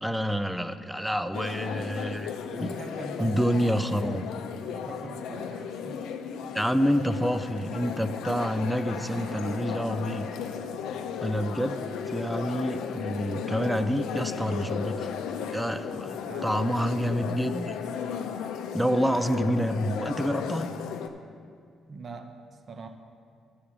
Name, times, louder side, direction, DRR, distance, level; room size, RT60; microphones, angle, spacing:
voice 1, 0.0-2.7 3.2-4.3 6.5-10.3 11.2-15.1 15.5-17.7 18.7-20.7, equal, 5° right, 11 dB, 0.4 m, -28 dB
sound 1, 1.3-21.1, left 7 dB, 90° left, 0.6 m, -35 dB
voice 2, 2.5-4.2 4.7-6.1 8.9-9.6 10.1-10.7 16.3-17.1 21.9-22.3 22.7-22.9, right 3 dB, 45° right, 6 dB, 0.7 m, -43 dB
12.0 x 5.0 x 6.0 m, 2.2 s
cardioid pair, 90°, 0 cm